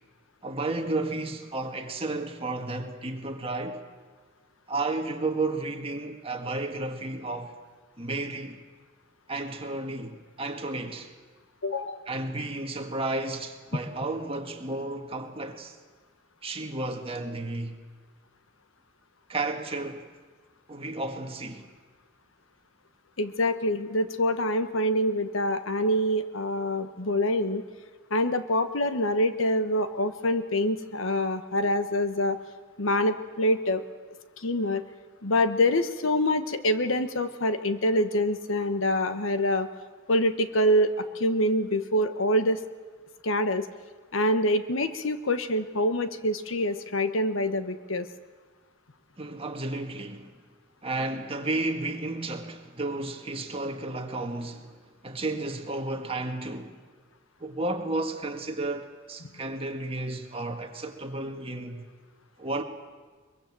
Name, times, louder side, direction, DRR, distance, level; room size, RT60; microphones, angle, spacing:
voice 1, 0.4-3.8 4.7-7.5 8.0-8.6 9.3-11.1 12.1-15.8 16.4-17.8 19.3-20.1 20.7-21.6 49.2-50.3 50.8-56.8 57.4-61.8 62.4-62.6, right 2 dB, 25° right, 1.8 m, -32 dB
voice 2, 11.6-12.0 23.2-27.6 28.1-32.4 32.8-33.8 34.4-34.8 35.2-39.7 40.1-42.6 43.2-43.7 44.1-48.1, left 1 dB, 65° left, 1.2 m, -25 dB
23.0 x 22.5 x 7.6 m
head